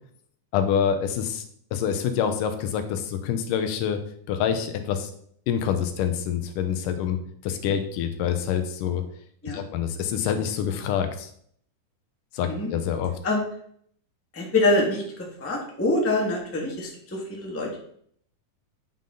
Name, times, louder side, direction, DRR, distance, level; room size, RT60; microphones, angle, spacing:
voice 1, 0.5-1.4 1.7-4.0 4.3-5.1 5.5-9.0 9.5-11.3 12.3-13.1, left 8 dB, 85° left, 8 dB, 2.5 m, -26 dB
voice 2, 14.3-15.0 15.4-17.8, left 2 dB, 10° left, -2 dB, 0.9 m, -25 dB
9.0 x 5.6 x 3.9 m, 0.64 s
omnidirectional pair, 3.7 m